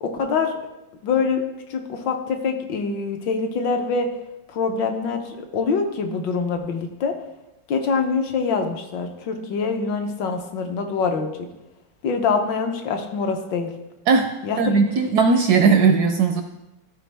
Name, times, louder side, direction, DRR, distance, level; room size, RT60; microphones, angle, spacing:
voice 1, 0.0-0.5 1.0-1.4 1.7-4.1 4.5-7.1 7.7-11.3 12.0-13.7 14.4-14.8, left 5 dB, 70° left, 4 dB, 1.4 m, -24 dB
voice 2, 14.6-16.4, right 5 dB, 75° right, 6 dB, 0.9 m, -17 dB
13.0 x 4.6 x 3.3 m, 0.95 s
omnidirectional pair, 2.1 m